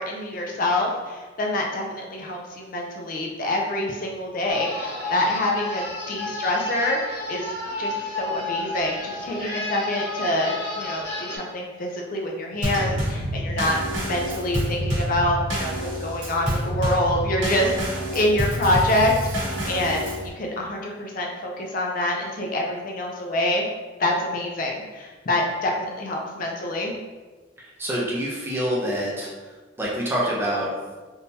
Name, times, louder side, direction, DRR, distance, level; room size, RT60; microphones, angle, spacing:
voice 1, 0.0-7.5 7.8-17.7 18.1-23.7 24.0-26.9, left 1 dB, 45° left, 0 dB, 0.4 m, -26 dB
sound 1, 4.5-11.4, left 2 dB, 60° left, 1.2 m, -31 dB
Drum kit / Snare drum / Bass drum, 12.6-20.3, equal, 75° right, 1.3 m, -27 dB
voice 2, 27.6-29.3 29.8-30.7, equal, 10° right, -4 dB, 0.6 m, -26 dB
3.6 x 2.7 x 2.7 m, 1.3 s
head